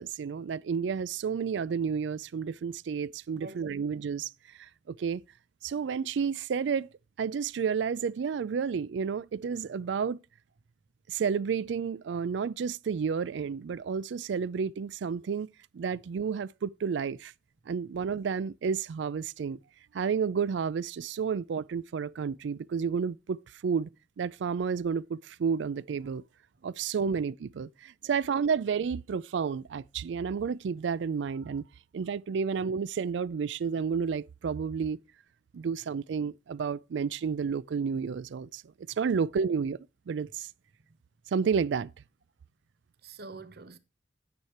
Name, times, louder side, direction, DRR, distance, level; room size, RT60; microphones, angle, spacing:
voice 1, 0.0-4.3 4.6-5.2 5.6-6.9 7.2-10.2 11.1-15.5 15.7-17.3 17.7-19.6 19.9-23.9 24.2-26.2 26.6-31.6 31.9-35.0 35.5-38.6 39.0-39.8 40.1-40.5 41.3-41.9, right 6 dB, 75° right, 0.4 m, -31 dB
voice 2, 3.3-3.8 27.1-27.2 28.0-28.1 43.0-43.8, right 3 dB, 55° right, 0.8 m, -46 dB
9.6 x 6.5 x 4.3 m
head